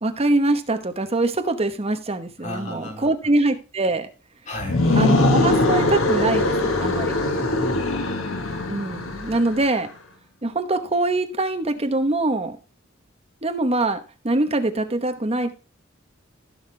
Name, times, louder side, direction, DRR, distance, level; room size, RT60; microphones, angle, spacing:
voice 1, 0.0-4.1 5.0-7.2 8.7-9.9 10.4-12.6 13.4-14.0 14.2-15.5, right 2 dB, 30° right, 1.0 m, -23 dB
voice 2, 2.4-3.1 4.4-4.9 7.2-7.9, left 1 dB, 35° left, 3.2 m, -33 dB
sound 1, 4.6-9.6, left 2 dB, 85° left, 1.3 m, -21 dB
15.0 x 5.8 x 3.3 m
head